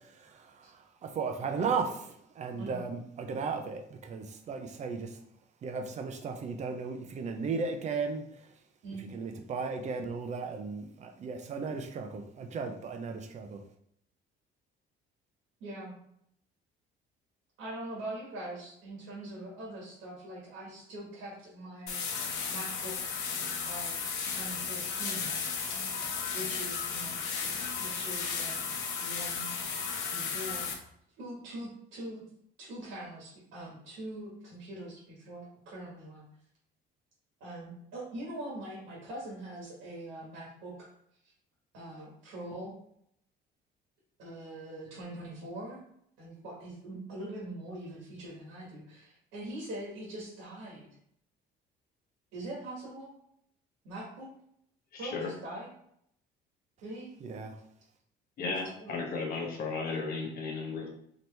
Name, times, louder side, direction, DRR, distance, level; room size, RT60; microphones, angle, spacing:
voice 1, 0.0-5.2 5.6-8.5 9.0-13.6 57.2-57.6, right 5 dB, 35° right, 6 dB, 0.5 m, -36 dB
voice 2, 15.6-15.9 17.6-22.0 22.5-23.1 23.6-24.0 24.3-25.3 26.3-27.2 27.8-28.7 29.0-29.5 30.1-30.7 31.2-32.2 32.6-36.2 37.4-40.9 41.7-42.7 44.2-45.8 46.2-50.9 52.3-53.1 53.8-54.3 55.0-55.7 56.8-57.1 58.4-59.1, right 1 dB, 90° right, -4 dB, 1.6 m, -43 dB
sound 1, 21.9-30.7, left 5 dB, 85° left, 0.8 m, -34 dB
voice 3, 54.9-55.3 58.4-60.9, left 4 dB, 50° left, 0 dB, 1.0 m, -35 dB
4.3 x 3.0 x 3.2 m, 0.70 s
cardioid pair, 150°, 20 cm